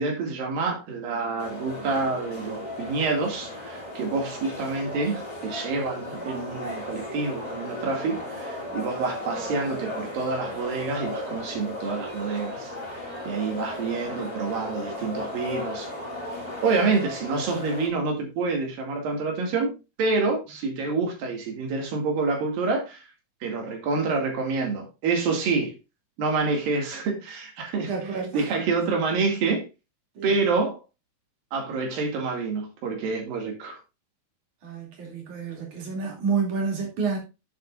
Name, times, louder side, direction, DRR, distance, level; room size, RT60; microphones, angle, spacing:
voice 1, 0.0-15.9 16.6-23.1 23.4-25.7 26.2-27.9 28.3-29.6 30.2-30.8 31.5-33.8, right 4 dB, 80° right, 4.0 m, -27 dB
sound 1, 1.4-17.9, left 1 dB, 15° left, 2.8 m, -36 dB
voice 2, 27.9-28.5 30.2-30.3 34.6-37.2, right 5 dB, 60° right, 4.1 m, -29 dB
11.0 x 7.0 x 2.5 m
omnidirectional pair, 4.0 m